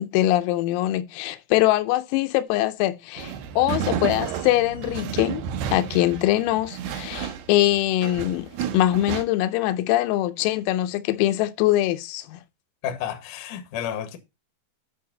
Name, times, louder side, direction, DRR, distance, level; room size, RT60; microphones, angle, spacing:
voice 1, 0.0-5.4 5.7-12.4, left 15 dB, 85° left, 3.4 m, -23 dB
sound 1, 3.2-9.2, right 8 dB, 80° right, 2.3 m, -31 dB
voice 2, 12.8-14.2, left 9 dB, 70° left, 2.0 m, -31 dB
11.5 x 5.5 x 4.0 m
omnidirectional pair, 6.0 m